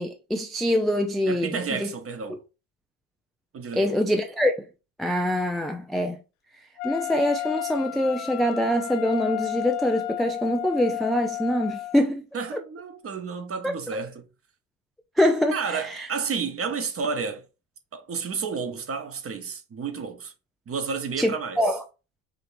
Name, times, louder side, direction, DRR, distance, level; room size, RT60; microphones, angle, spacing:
voice 1, 0.0-1.9 3.7-4.5 5.0-6.2 6.8-12.3 13.6-13.7 15.2-16.1 21.2-21.8, left 1 dB, ahead, 0.4 m, -24 dB
voice 2, 1.3-2.4 3.5-3.9 12.3-14.3 15.5-17.4 17.9-20.3 20.7-21.6, right 5 dB, 30° right, 1.0 m, -31 dB
Wind instrument woodwind instrument, 6.8-12.0, left 15 dB, 75° left, 0.6 m, -32 dB
5.2 x 2.8 x 2.6 m
hypercardioid pair, 65°, 44 cm